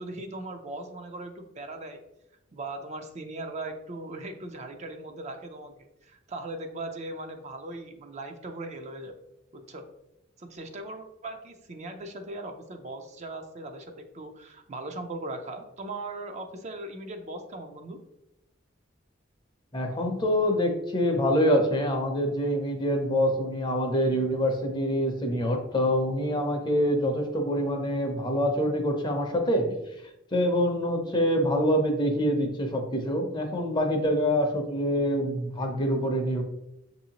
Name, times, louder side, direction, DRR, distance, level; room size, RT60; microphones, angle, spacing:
voice 1, 0.0-2.0 2.5-5.7 6.0-9.2 9.5-9.9 10.4-18.0, right 2 dB, 35° right, 5 dB, 0.4 m, -39 dB
voice 2, 19.7-29.7 30.3-36.4, equal, 25° left, 3 dB, 0.6 m, -25 dB
6.8 x 2.7 x 2.8 m, 0.87 s
head